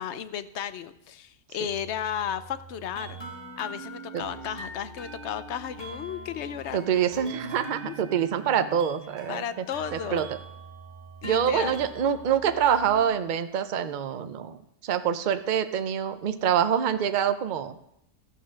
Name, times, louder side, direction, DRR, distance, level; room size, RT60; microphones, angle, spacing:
voice 1, 0.0-3.2 3.6-7.0 7.8-7.9 9.3-10.2 11.2-11.8, left 9 dB, 60° left, 13 dB, 0.8 m, -34 dB
sound 1, 1.7-13.0, right 1 dB, 15° left, 2.2 m, -43 dB
voice 2, 6.7-9.6 9.9-10.3 11.2-17.8, right 8 dB, 75° right, 9 dB, 0.4 m, -26 dB
13.5 x 9.1 x 6.3 m, 0.81 s
omnidirectional pair, 1.7 m